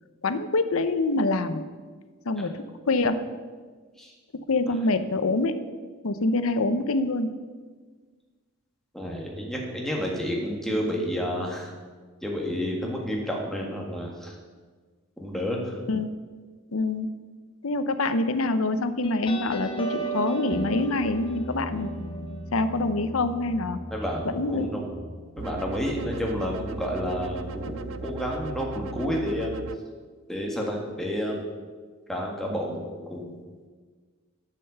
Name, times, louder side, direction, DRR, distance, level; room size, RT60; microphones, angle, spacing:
voice 1, 0.2-1.6 2.3-2.6 2.9-3.2 4.5-5.6 6.0-7.3 15.9-16.1 16.7-17.1 17.6-23.8 24.3-24.7 27.7-27.8, left 2 dB, 80° left, 11 dB, 0.7 m, -25 dB
voice 2, 8.9-11.7 12.2-14.4 15.2-15.8 23.9-24.8 25.4-29.5 30.3-31.4 32.1-33.4, equal, ahead, -1 dB, 1.6 m, -30 dB
sound 1, 19.0-26.2, right 1 dB, 25° left, 1.2 m, -35 dB
sound 2, 25.4-29.8, right 4 dB, 70° right, 0.5 m, -38 dB
9.0 x 7.6 x 6.8 m, 1.5 s
head